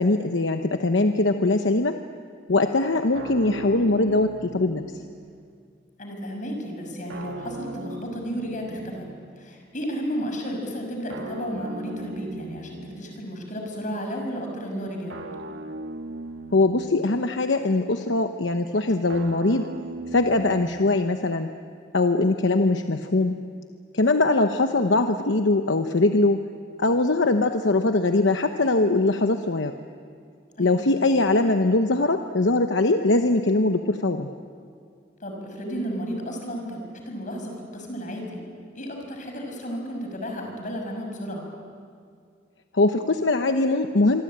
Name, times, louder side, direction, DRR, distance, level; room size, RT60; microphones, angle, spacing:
voice 1, 0.0-2.0 2.5-4.8 16.5-19.7 20.1-21.5 21.9-23.4 23.9-26.4 26.8-29.7 30.6-34.3 42.7-44.2, left 2 dB, 75° left, 7 dB, 1.0 m, -21 dB
sound 1, 3.1-5.5 7.1-9.5 11.1-13.3 15.1-17.4 19.1-21.4, right 2 dB, 85° right, 1.5 m, -39 dB
voice 2, 6.0-9.1 9.4-15.1 30.6-30.9 35.2-36.8 37.1-38.4 38.7-41.4, equal, 45° left, 2 dB, 6.0 m, -33 dB
27.0 x 24.0 x 8.8 m, 2.3 s
head